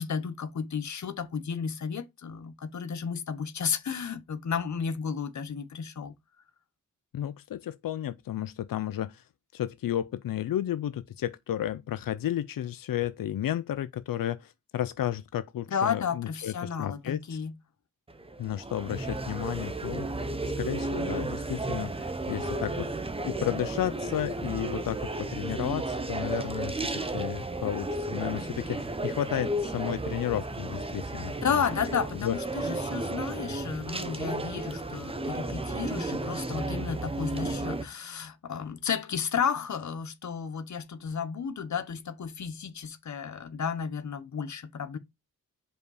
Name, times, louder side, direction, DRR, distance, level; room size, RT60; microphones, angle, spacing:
voice 1, 0.0-6.1 15.7-17.5 31.4-45.0, left 6 dB, 60° left, 0.8 m, -32 dB
voice 2, 7.1-9.2 9.5-17.4 18.4-20.3 20.6-31.6 32.2-32.4, left 11 dB, 90° left, 0.5 m, -33 dB
sound 1, 18.1-37.8, right 2 dB, 15° right, 0.7 m, -33 dB
5.3 x 4.6 x 4.8 m
wide cardioid pair, 180°, 33 cm